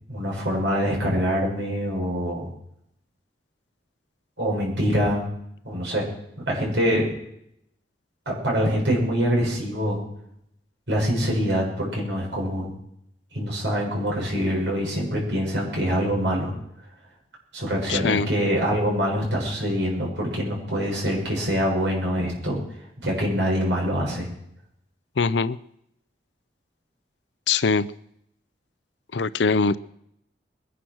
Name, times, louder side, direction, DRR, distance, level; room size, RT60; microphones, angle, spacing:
voice 1, 0.1-2.5 4.4-5.2 5.7-6.1 6.5-7.1 8.3-10.0 10.9-12.7 13.3-16.5 17.5-22.6 23.0-24.3, equal, 75° right, -2 dB, 7.0 m, -24 dB
voice 2, 17.9-18.3 25.2-25.6 27.5-27.9 29.1-29.8, left 4 dB, 80° left, 17 dB, 0.6 m, -22 dB
22.0 x 10.0 x 6.2 m, 0.76 s
head